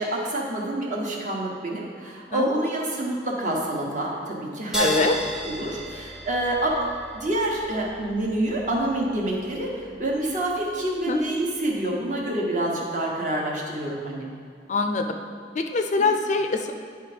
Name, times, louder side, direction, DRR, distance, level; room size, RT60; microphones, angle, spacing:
voice 1, 0.0-5.1 5.4-14.3 16.0-16.1, right 1 dB, 45° right, -2 dB, 1.2 m, -27 dB
sound 1, 4.7-11.7, equal, 5° right, 0.7 m, -37 dB
voice 2, 4.8-5.1 11.1-11.2 14.7-15.1 15.5-16.7, left 3 dB, 40° left, 6 dB, 0.4 m, -23 dB
10.0 x 3.5 x 5.0 m, 2.3 s
head